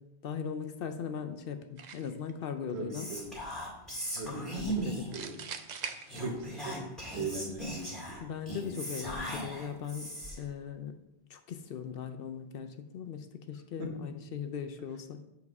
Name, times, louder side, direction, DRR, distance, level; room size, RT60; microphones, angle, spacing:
voice 1, 0.0-3.1 4.2-5.2 8.2-10.1 10.4-11.0 11.3-15.2, left 7 dB, 65° left, 8 dB, 0.7 m, -39 dB
sound 1, 1.8-2.3 5.1-6.7, right 6 dB, 55° right, 0.5 m, -42 dB
voice 2, 2.7-3.4 4.1-5.4 6.2-8.2 13.8-14.0, right 3 dB, 75° right, 2 dB, 1.3 m, -40 dB
Whispering, 2.9-5.2 6.1-10.5, right 1 dB, ahead, 2.1 m, -38 dB
7.2 x 4.1 x 4.7 m, 0.89 s
omnidirectional pair, 1.1 m